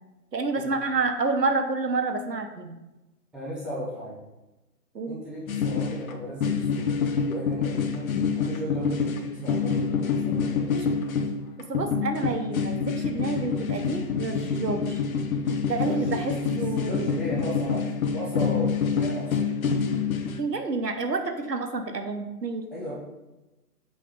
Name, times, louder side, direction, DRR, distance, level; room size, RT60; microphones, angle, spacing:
voice 1, 0.3-2.7 4.9-5.2 10.7-10.9 11.6-15.0 15.6-17.2 20.4-22.6, right 3 dB, 90° right, 6 dB, 1.2 m, -29 dB
voice 2, 3.3-4.2 5.1-8.1 8.4-10.8 15.8-16.5 16.7-19.5 22.7-22.9, equal, ahead, -9 dB, 0.7 m, -36 dB
sound 1, 5.5-6.1 6.4-20.4, left 5 dB, 60° left, 0.9 m, -27 dB
7.6 x 3.2 x 5.2 m, 1.0 s
figure-of-eight pair, 140°, 48 cm